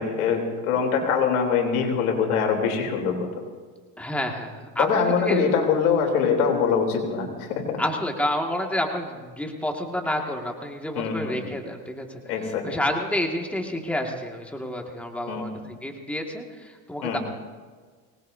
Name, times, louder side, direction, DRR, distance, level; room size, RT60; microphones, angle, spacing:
voice 1, 0.0-3.3 4.8-7.8 11.0-11.4 12.3-12.8 15.3-15.6 17.0-17.2, left 6 dB, 90° left, 2 dB, 3.6 m, -23 dB
voice 2, 4.0-5.4 7.8-12.2 12.6-17.2, left 1 dB, 5° left, 1 dB, 2.0 m, -29 dB
24.5 x 19.5 x 2.7 m, 1.5 s
supercardioid pair, 105°, 43 cm